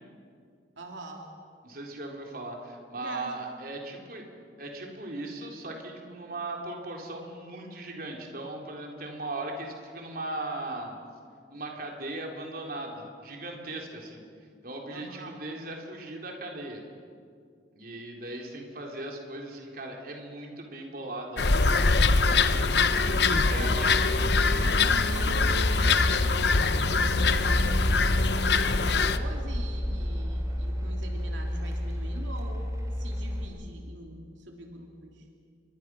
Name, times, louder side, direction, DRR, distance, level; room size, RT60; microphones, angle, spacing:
voice 1, 0.8-1.3 3.0-3.4 6.0-6.3 14.9-15.4 23.6-32.6 32.9-35.3, right 2 dB, 90° right, 1 dB, 3.0 m, -44 dB
voice 2, 1.6-4.3 4.6-11.0 11.5-14.2 14.6-16.8 17.7-22.7 23.0-23.9, right 2 dB, 50° right, 1 dB, 3.8 m, -38 dB
sound 1, 21.4-29.2, left 4 dB, 65° left, 1.0 m, -23 dB
sound 2, 23.2-33.4, equal, 20° right, 3.2 m, -31 dB
29.0 x 23.5 x 6.3 m, 2.3 s
head